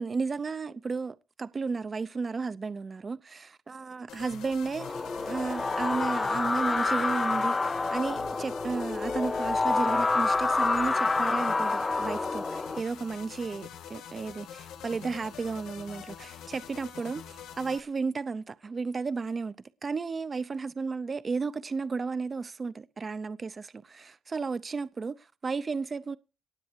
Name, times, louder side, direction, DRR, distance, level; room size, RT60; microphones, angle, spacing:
voice 1, 0.0-19.5 19.8-26.2, right 4 dB, 35° right, 0.7 m, -33 dB
sound 1, 4.1-17.8, left 8 dB, 85° left, 1.5 m, -45 dB
sound 2, 4.8-12.8, left 3 dB, 25° left, 0.6 m, -28 dB
18.0 x 7.7 x 4.6 m
cardioid pair, 90°, 0 cm